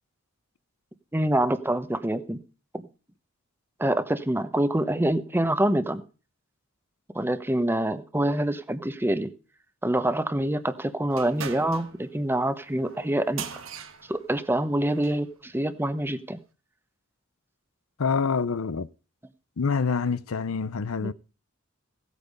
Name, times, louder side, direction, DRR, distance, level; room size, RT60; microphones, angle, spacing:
voice 1, 1.1-2.4 2.7-2.9 3.8-6.0 7.1-9.3 9.8-13.4 14.1-16.4 21.0-21.1, right 1 dB, 10° right, 0.9 m, -26 dB
sound 1, 11.1-15.3, right 6 dB, 70° right, 1.7 m, -41 dB
voice 2, 18.0-18.9 19.6-21.1, left 5 dB, 80° left, 0.6 m, -26 dB
16.5 x 8.3 x 5.4 m
head